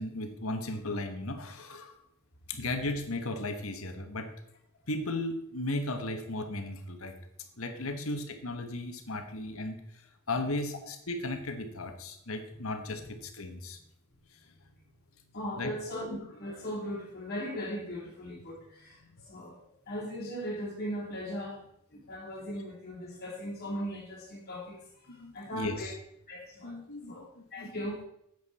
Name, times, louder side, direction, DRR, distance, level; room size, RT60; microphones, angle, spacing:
voice 1, 0.0-2.0 2.5-4.3 4.9-7.1 7.6-9.8 10.3-13.8 15.6-15.7 25.1-25.9 26.6-27.7, left 2 dB, 70° left, 7 dB, 1.4 m, -36 dB
voice 2, 15.3-21.6 21.9-25.9 26.3-26.8 27.1-27.2 27.5-28.0, equal, 45° left, -2 dB, 3.4 m, -38 dB
10.5 x 8.1 x 4.3 m, 0.76 s
head